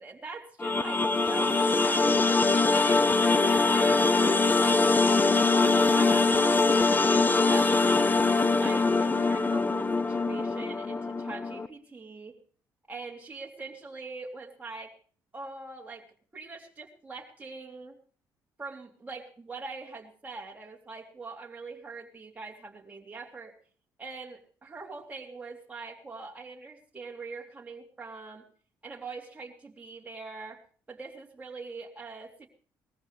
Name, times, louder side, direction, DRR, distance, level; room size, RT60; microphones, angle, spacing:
voice 1, 0.0-6.3 7.0-12.4 12.9-14.9 15.3-18.0 18.6-23.5 24.0-28.4 28.8-30.6 30.9-32.5, right 3 dB, 20° right, -1 dB, 3.1 m, -43 dB
sound 1, 0.6-11.7, left 3 dB, 25° left, 0.9 m, -23 dB
20.0 x 14.5 x 3.3 m, 0.43 s
cardioid pair, 80°, 8 cm